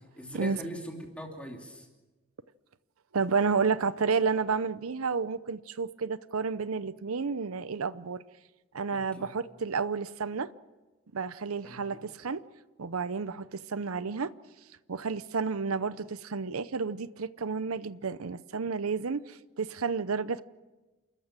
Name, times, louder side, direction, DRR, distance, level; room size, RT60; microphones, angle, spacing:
voice 1, 0.2-1.9 8.9-9.3 11.6-12.0, equal, 5° left, 1 dB, 2.7 m, -41 dB
voice 2, 3.1-8.2 8.7-10.5 11.1-12.4 12.8-14.3 14.9-20.4, right 5 dB, 90° right, 15 dB, 0.7 m, -31 dB
29.0 x 14.0 x 9.0 m, 1.2 s
head